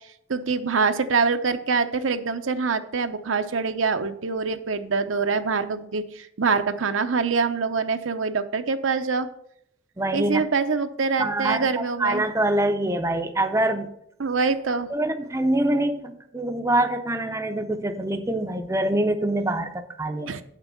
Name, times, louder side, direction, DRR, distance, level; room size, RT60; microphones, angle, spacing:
voice 1, 0.3-9.3 10.1-12.2 14.2-14.9 20.3-20.4, right 4 dB, 80° right, 8 dB, 0.7 m, -25 dB
voice 2, 10.0-10.4 11.2-11.7 12.0-13.9 14.9-20.3, right 1 dB, 15° right, 6 dB, 0.5 m, -25 dB
8.1 x 6.0 x 6.7 m, 0.71 s
head